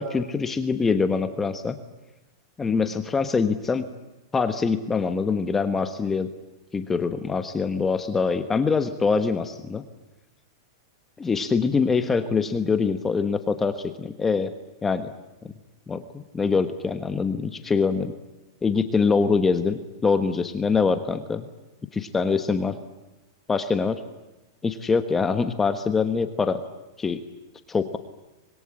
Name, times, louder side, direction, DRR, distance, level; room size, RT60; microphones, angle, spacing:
voice 1, 0.0-1.8 2.6-3.8 4.3-6.3 6.7-9.8 11.2-14.5 14.8-15.1 15.9-18.1 18.6-21.5 21.9-22.8 23.5-24.0 24.6-26.6 27.0-27.2 27.7-28.0, left 5 dB, 10° left, 8 dB, 1.2 m, -24 dB
25.5 x 22.0 x 10.0 m, 1.0 s
supercardioid pair, 160°, 2 cm